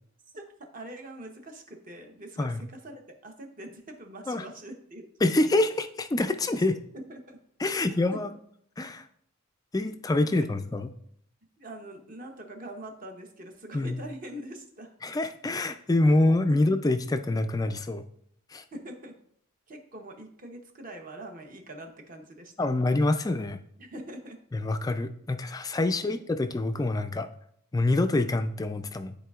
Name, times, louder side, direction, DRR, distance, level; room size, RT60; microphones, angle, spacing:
voice 1, 0.3-5.6 6.9-7.4 7.7-7.8 8.1-8.4 10.2-10.5 11.6-14.9 16.2-16.7 18.7-19.2 19.7-22.5 23.8-24.4 26.0-26.1, right 1 dB, 40° right, 4 dB, 0.9 m, -43 dB
voice 2, 5.2-6.7 7.6-8.3 8.8-9.1 9.7-10.9 13.7-14.0 15.0-18.0 18.5-18.6 22.6-23.6 24.5-27.3 27.7-29.2, left 2 dB, 15° left, 9 dB, 0.3 m, -26 dB
12.0 x 4.1 x 2.4 m, 0.68 s
head